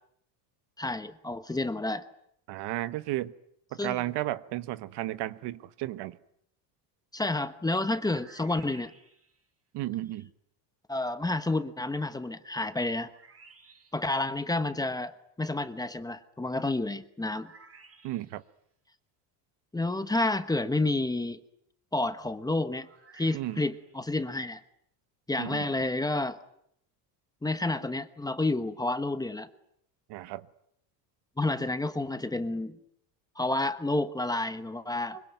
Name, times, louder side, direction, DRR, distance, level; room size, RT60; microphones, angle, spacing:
voice 1, 0.8-2.1 3.8-4.0 7.1-8.9 10.9-13.1 13.9-17.5 19.7-21.4 21.9-22.9 23.1-24.6 25.3-26.4 27.4-29.5 31.4-32.8 33.4-35.2, left 2 dB, 10° left, 1.2 m, -30 dB
voice 2, 2.5-3.3 3.7-6.2 9.7-10.3 18.0-18.4 23.3-23.6 25.4-25.7 30.1-30.4 35.1-35.2, right 16 dB, 65° right, 1.3 m, -33 dB
sound 1, 7.8-9.5 13.0-14.2 17.3-18.5 22.6-24.0, right 4 dB, 30° right, 6.0 m, -56 dB
25.5 x 24.0 x 9.3 m
cardioid pair, 145°, 44 cm